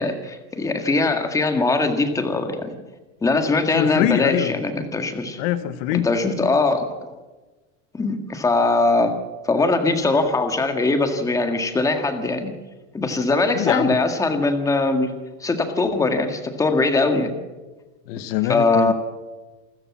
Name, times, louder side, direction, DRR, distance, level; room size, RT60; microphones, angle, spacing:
voice 1, 0.0-2.7 3.2-5.4 6.0-7.1 7.9-9.1 9.4-12.5 12.9-17.3 18.5-18.9, left 3 dB, 10° left, 6 dB, 1.8 m, -21 dB
voice 2, 3.7-4.5 5.4-6.1 13.5-14.0 18.1-18.9, left 13 dB, 55° left, 12 dB, 1.2 m, -23 dB
27.5 x 13.5 x 7.2 m, 1.2 s
cardioid pair, 175°, 34 cm